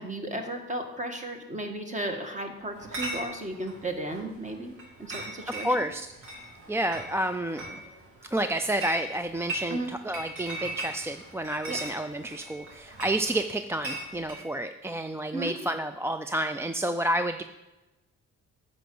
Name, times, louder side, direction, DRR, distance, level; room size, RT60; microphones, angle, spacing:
voice 1, 0.0-5.8 9.7-9.9 11.7-11.8 15.3-15.5, right 1 dB, 25° right, 4 dB, 1.7 m, -34 dB
Chatter / Chink clink, 2.7-14.4, right 1 dB, 85° right, 3.0 m, -40 dB
voice 2, 5.5-6.1 6.7-7.8 8.3-17.4, right 1 dB, 10° right, 8 dB, 0.4 m, -30 dB
8.9 x 5.1 x 7.7 m, 1.0 s
cardioid pair, 90°, 30 cm